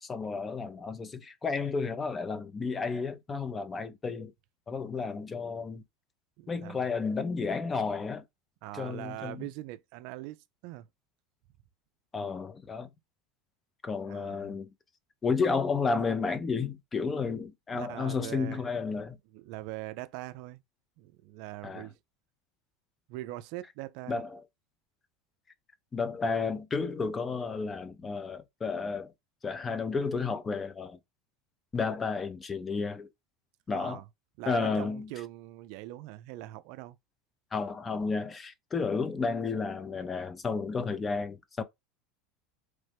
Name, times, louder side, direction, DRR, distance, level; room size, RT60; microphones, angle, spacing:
voice 1, 0.0-4.3 4.7-5.8 6.5-8.2 8.7-9.5 12.1-12.9 13.8-14.7 15.2-19.2 21.6-21.9 24.1-24.4 25.9-29.1 29.4-31.0 31.7-33.1 33.7-34.0 34.5-35.1 37.5-41.6, left 4 dB, 25° left, 0.5 m, -32 dB
voice 2, 6.4-6.8 8.6-10.9 14.1-14.6 17.7-18.7 19.3-20.6 21.0-22.0 23.1-24.2 33.7-34.0 34.4-37.0, right 16 dB, 65° right, 0.3 m, -42 dB
3.0 x 2.1 x 3.3 m
supercardioid pair, 110°, 0 cm